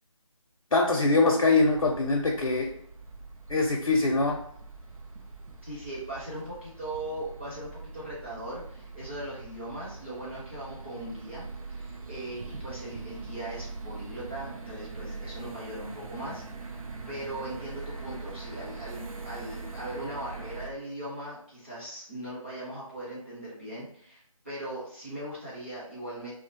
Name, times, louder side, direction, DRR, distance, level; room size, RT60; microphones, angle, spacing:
voice 1, 0.7-2.7 3.5-4.4, left 3 dB, 65° left, 0 dB, 0.5 m, -23 dB
sound 1, 1.6-20.7, right 3 dB, 85° right, 0.5 m, -42 dB
voice 2, 5.6-16.8 17.1-26.3, right 1 dB, 20° right, -8 dB, 0.6 m, -39 dB
2.3 x 2.1 x 2.7 m, 0.65 s
figure-of-eight pair, 170°, 18 cm